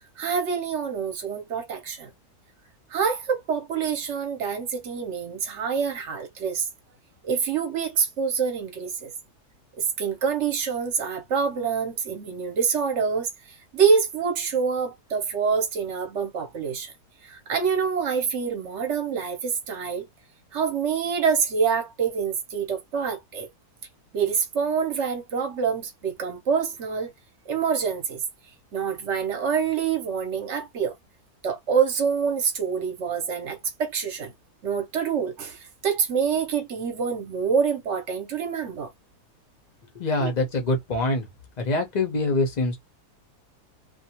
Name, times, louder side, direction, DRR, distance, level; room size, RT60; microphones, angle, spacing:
voice 1, 0.2-2.1 2.9-6.7 7.2-9.1 10.0-13.3 13.7-16.9 17.2-20.1 20.5-23.5 24.1-27.1 27.5-28.2 28.7-30.9 31.4-34.3 34.6-38.9 40.2-40.3, right 6 dB, 60° right, 0.8 m, -26 dB
voice 2, 39.9-41.3 41.6-42.8, left 2 dB, 50° left, 0.5 m, -24 dB
2.5 x 2.2 x 2.8 m
omnidirectional pair, 1.7 m